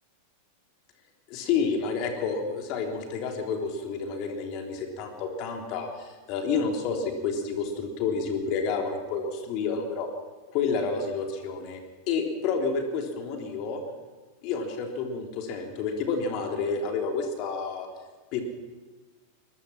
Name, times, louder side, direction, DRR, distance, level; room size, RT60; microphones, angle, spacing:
voice 1, 1.3-9.2 9.5-10.1 10.5-11.8 12.1-13.8 14.4-17.9 18.3-18.4, left 5 dB, 40° left, 3 dB, 3.5 m, -29 dB
22.5 x 21.0 x 6.0 m, 1.3 s
figure-of-eight pair, 90°, 0 cm